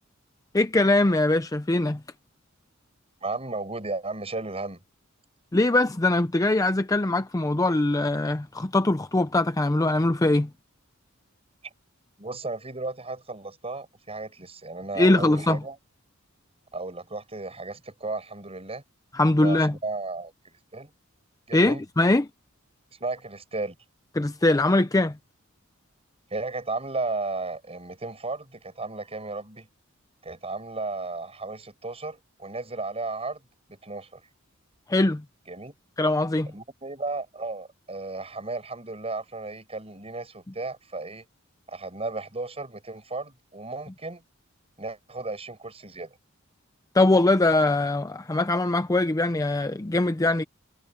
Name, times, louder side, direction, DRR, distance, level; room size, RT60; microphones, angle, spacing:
voice 1, 0.5-2.0 5.5-10.5 15.0-15.6 19.1-19.8 21.5-22.2 24.1-25.2 34.9-35.2 36.0-36.5 46.9-50.4, left 2 dB, 15° left, 0.5 m, -22 dB
voice 2, 3.2-4.8 12.2-15.8 16.7-18.8 19.4-20.9 21.5-21.8 22.9-23.7 26.3-29.7 30.2-33.4 33.7-34.2 35.5-35.7 36.5-41.2 41.7-44.2 44.8-46.2, right 3 dB, 30° right, 7.7 m, -34 dB
head